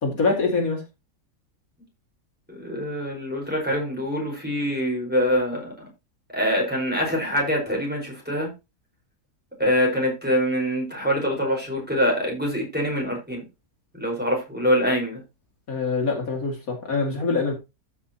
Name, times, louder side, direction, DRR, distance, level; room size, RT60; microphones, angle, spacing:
voice 1, 0.0-0.8 15.7-17.5, left 4 dB, 60° left, 2.9 m, -24 dB
voice 2, 2.5-5.7 6.3-8.5 9.6-13.4 13.9-15.2, equal, 5° right, 5.1 m, -24 dB
14.5 x 6.1 x 3.0 m
omnidirectional pair, 1.6 m